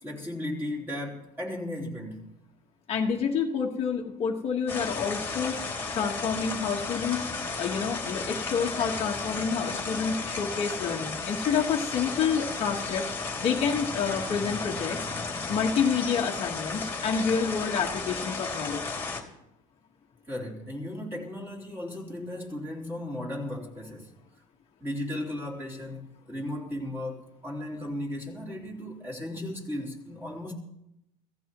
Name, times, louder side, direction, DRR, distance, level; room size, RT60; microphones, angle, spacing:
voice 1, 0.0-2.3 20.3-24.1 24.8-30.5, left 1 dB, 10° right, 3.5 m, -36 dB
voice 2, 2.9-7.3 7.6-13.0 13.4-15.1 15.5-18.8, left 6 dB, 30° left, 1.5 m, -28 dB
sound 1, 4.7-19.2, left 4 dB, 10° left, 2.6 m, -34 dB
26.0 x 16.5 x 3.0 m
cardioid pair, 160°, 19 cm